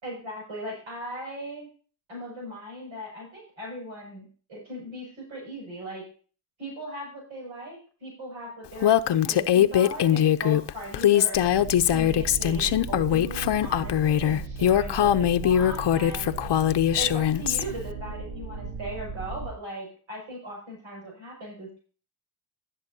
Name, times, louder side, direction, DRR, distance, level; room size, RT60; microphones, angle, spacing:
voice 1, 0.0-1.7 2.1-6.0 6.6-8.9 9.3-11.4 11.9-16.4 17.0-21.8, equal, 70° right, -3 dB, 6.3 m, -38 dB
Female speech woman speaking, 8.8-17.6, left 10 dB, 55° left, 0.8 m, -22 dB
sound 1, 11.3-19.5, right 3 dB, 85° right, 2.5 m, -37 dB
16.0 x 7.5 x 2.8 m, 0.39 s
cardioid pair, 70°, 49 cm